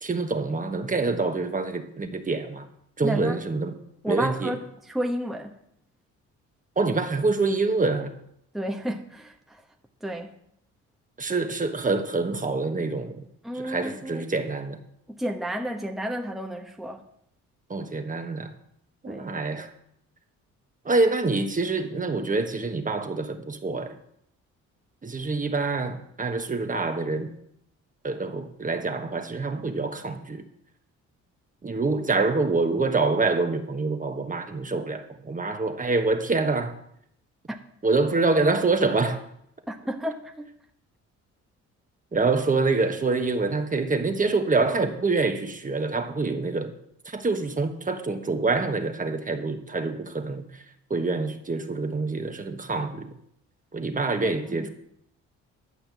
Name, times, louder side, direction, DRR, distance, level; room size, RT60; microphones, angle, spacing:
voice 1, 0.0-2.7 3.0-3.8 4.1-4.6 6.8-8.2 11.2-13.2 13.5-14.8 17.7-18.5 19.0-19.7 20.8-24.0 25.0-27.3 28.0-30.4 31.6-36.8 37.8-39.2 42.1-46.7 47.0-50.6 50.9-53.1 53.7-54.7, right 3 dB, 25° right, 1.3 m, -26 dB
voice 2, 3.0-3.4 4.0-4.6 4.9-5.5 8.5-9.6 10.0-10.3 13.4-14.2 15.2-17.0 19.1-19.3 39.7-40.5 54.2-54.7, right 1 dB, ahead, 1.0 m, -31 dB
11.5 x 5.7 x 8.2 m
cardioid pair, 90°, 30 cm